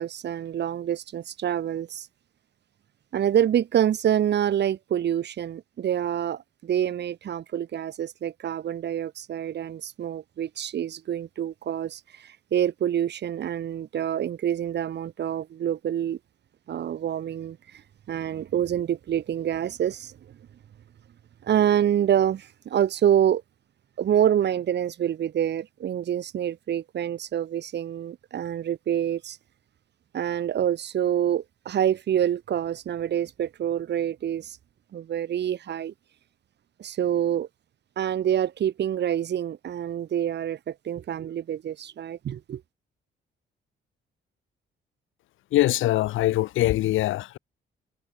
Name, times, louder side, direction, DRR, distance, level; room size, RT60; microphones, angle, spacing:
voice 1, 0.0-2.1 3.1-16.2 16.7-17.8 18.1-20.1 21.4-23.4 24.0-29.4 30.1-34.6 34.9-35.9 36.8-37.5 38.0-42.6, right 10 dB, 60° right, 1.6 m, -26 dB
voice 2, 45.5-47.4, left 15 dB, 80° left, 0.8 m, -23 dB
cardioid pair, 90°, 20 cm